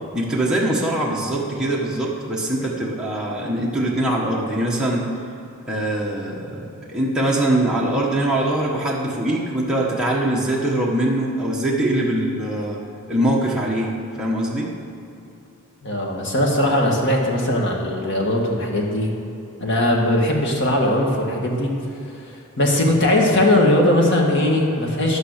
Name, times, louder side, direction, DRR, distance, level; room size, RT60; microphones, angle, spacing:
voice 1, 0.1-5.1 5.7-12.8 13.1-13.9 14.2-14.7, right 1 dB, 5° right, -5 dB, 1.3 m, -22 dB
voice 2, 15.8-19.1 19.6-21.7 22.6-25.2, left 1 dB, 55° left, 0 dB, 1.8 m, -19 dB
10.5 x 8.9 x 6.6 m, 2.8 s
head